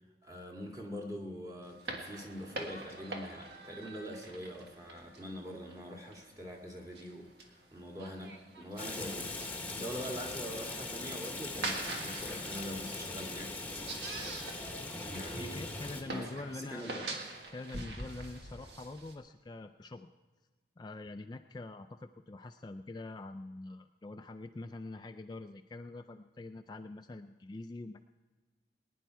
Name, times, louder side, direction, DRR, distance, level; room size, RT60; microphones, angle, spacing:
voice 1, 0.2-13.5 15.1-15.6 16.0-17.1, equal, 20° right, 0 dB, 1.9 m, -43 dB
sound 1, 1.6-19.1, right 2 dB, 70° right, 1.7 m, -45 dB
Rain, 8.8-16.0, left 2 dB, 10° left, 1.1 m, -40 dB
voice 2, 15.4-17.1 17.5-20.1 20.8-28.0, left 2 dB, 25° left, 7 dB, 0.3 m, -45 dB
20.0 x 10.0 x 4.6 m, 1.3 s
head